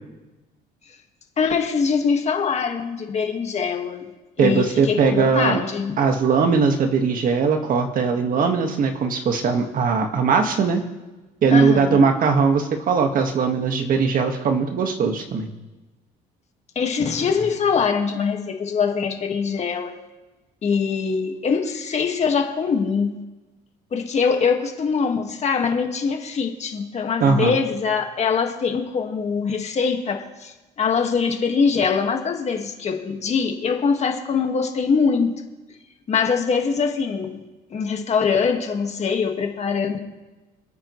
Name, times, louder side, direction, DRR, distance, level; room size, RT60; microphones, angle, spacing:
voice 1, 1.4-4.1 4.4-5.9 11.5-12.1 16.8-20.0 20.6-23.1 23.9-35.3 36.1-37.4 37.7-40.0, left 5 dB, 40° left, 3 dB, 1.8 m, -23 dB
voice 2, 4.4-5.6 6.0-10.8 11.4-15.5 27.2-27.5, right 5 dB, 55° right, 5 dB, 1.7 m, -20 dB
27.5 x 9.2 x 3.2 m, 1.1 s
cardioid pair, 110°, 17 cm